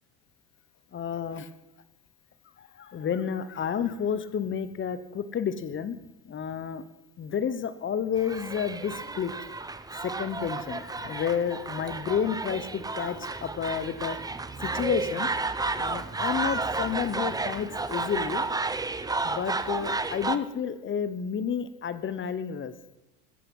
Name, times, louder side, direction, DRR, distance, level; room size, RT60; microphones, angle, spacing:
voice 1, 0.9-1.5 2.6-6.0 6.2-6.8 7.2-9.3 10.0-14.2 14.6-15.3 15.8-18.4 19.2-22.7, left 7 dB, 30° left, 14 dB, 1.1 m, -30 dB
sound 1, 8.2-20.4, right 3 dB, 10° right, 0.8 m, -32 dB
15.0 x 14.5 x 5.5 m, 1.0 s
supercardioid pair, 100°, 42 cm